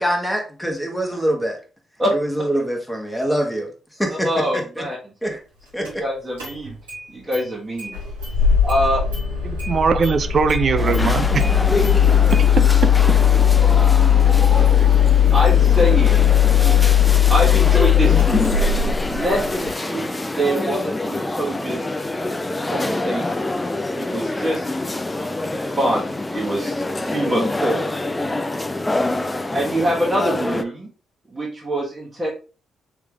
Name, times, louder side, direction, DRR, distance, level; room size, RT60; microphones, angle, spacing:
voice 1, 0.0-1.6 2.1-3.7 4.0-4.8 5.2-5.4 5.7-6.0, right 1 dB, ahead, 1.3 m, -24 dB
voice 2, 4.1-5.1 5.8-6.7 7.1-8.0 8.6-9.0 11.7-11.8 14.3-17.0 17.3-18.6 19.1-21.9 22.6-23.6 23.9-24.7 25.6-27.9 29.5-30.9 31.3-32.3, right 1 dB, 30° right, 1.5 m, -25 dB
Engine starting, 5.8-5.9 6.4-7.0 7.3-7.4 7.8-19.7, left 9 dB, 85° right, 1.4 m, -17 dB
voice 3, 9.4-11.4 12.6-13.2, right 5 dB, 50° right, 0.4 m, -21 dB
sound 1, 10.8-30.6, left 2 dB, 20° left, 0.4 m, -26 dB
3.5 x 3.3 x 3.3 m
hypercardioid pair, 40°, 0 cm